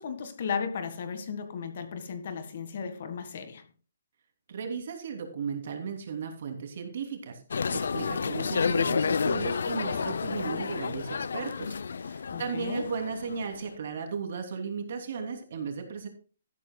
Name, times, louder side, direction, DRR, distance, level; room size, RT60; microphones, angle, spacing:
voice 1, 0.0-3.6 12.3-12.9, left 6 dB, 45° left, 1.7 m, -35 dB
voice 2, 4.5-7.4 7.7-16.1, right 5 dB, 45° right, 3.0 m, -35 dB
sound 1, 7.5-13.7, left 5 dB, 70° left, 0.5 m, -30 dB
13.5 x 12.5 x 2.3 m
hypercardioid pair, 175°, 0 cm